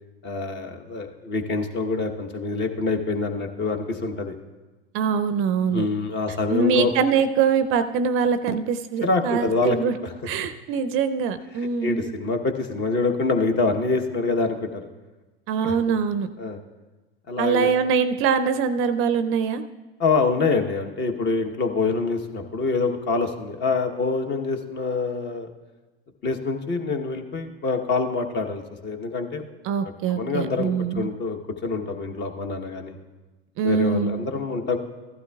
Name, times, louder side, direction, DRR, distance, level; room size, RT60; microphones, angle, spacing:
voice 1, 0.2-4.4 5.7-6.9 9.0-9.8 11.8-14.8 15.6-15.9 16.4-16.6 17.3-17.7 20.0-25.5 26.2-29.4 30.1-33.0 33.6-34.8, left 3 dB, 35° left, 5 dB, 1.1 m, -25 dB
voice 2, 4.9-5.9 6.3-9.9 10.2-12.1 15.5-16.3 17.4-19.6 29.6-31.1 33.6-34.2, right 6 dB, 40° right, 11 dB, 0.5 m, -23 dB
15.0 x 12.0 x 2.3 m, 1.2 s
hypercardioid pair, 100°, 32 cm